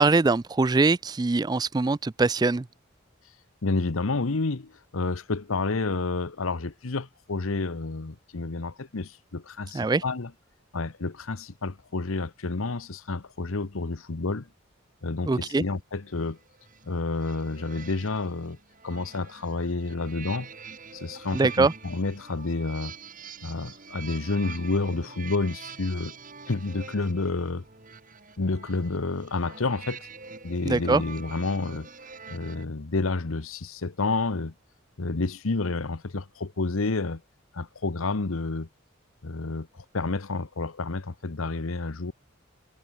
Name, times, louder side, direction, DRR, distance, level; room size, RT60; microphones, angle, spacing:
voice 1, 0.0-2.7 9.7-10.0 15.3-15.6 21.3-21.7 30.6-31.0, right 3 dB, 20° right, 0.3 m, -22 dB
voice 2, 3.6-10.3 10.7-14.5 15.0-16.4 16.8-18.6 18.8-20.5 20.9-23.0 23.4-26.1 26.5-27.6 28.4-30.1 30.4-31.9 32.3-34.5 35.0-37.2 37.5-38.7 39.2-39.7 39.9-42.1, left 3 dB, 80° left, 1.0 m, -29 dB
sound 1, 16.1-32.6, right 5 dB, 40° right, 8.0 m, -46 dB
head